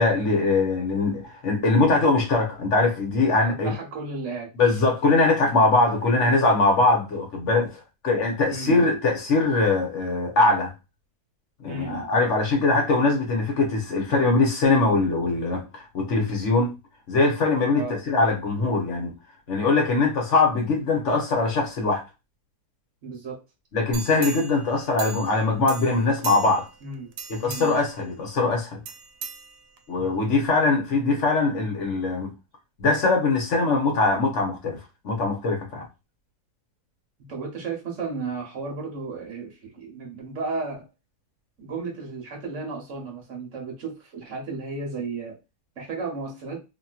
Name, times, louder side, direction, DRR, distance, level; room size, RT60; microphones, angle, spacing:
voice 1, 0.0-3.7 4.6-10.7 11.6-16.7 17.1-19.1 19.5-22.0 23.7-26.7 27.3-28.8 29.9-32.3 32.8-34.8 35.0-35.8, left 3 dB, 55° left, 1.1 m, -22 dB
voice 2, 3.4-4.5 8.5-8.8 11.7-12.1 17.8-18.0 23.0-23.4 26.8-27.1 27.4-27.8 37.2-40.9 41.6-45.4 45.8-46.6, right 4 dB, 55° right, 1.2 m, -34 dB
sound 1, 23.9-25.4 25.7-26.7 27.1-27.9 28.9-30.0 30.4-30.5, right 6 dB, 85° right, 1.1 m, -38 dB
2.9 x 2.8 x 2.3 m
omnidirectional pair, 1.7 m